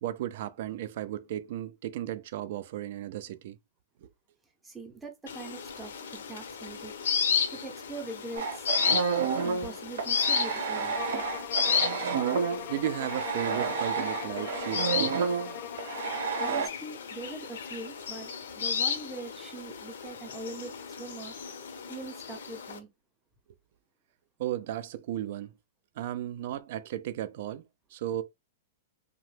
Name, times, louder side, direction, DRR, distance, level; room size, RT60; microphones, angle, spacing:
voice 1, 0.0-3.6 4.0-4.1 12.7-15.2 24.4-25.6 26.0-27.6 27.9-28.2, right 12 dB, 50° right, 0.3 m, -35 dB
voice 2, 4.6-6.9 7.5-8.4 9.4-11.0 16.4-20.7 21.0-21.3 21.9-22.9, right 3 dB, 10° right, 0.6 m, -42 dB
sound 1, 5.3-22.8, left 6 dB, 85° left, 0.6 m, -33 dB
sound 2, 8.4-16.7, right 5 dB, 75° right, 0.7 m, -30 dB
sound 3, 10.9-16.7, left 11 dB, 40° left, 0.3 m, -41 dB
2.8 x 2.1 x 3.2 m
supercardioid pair, 165°, 0 cm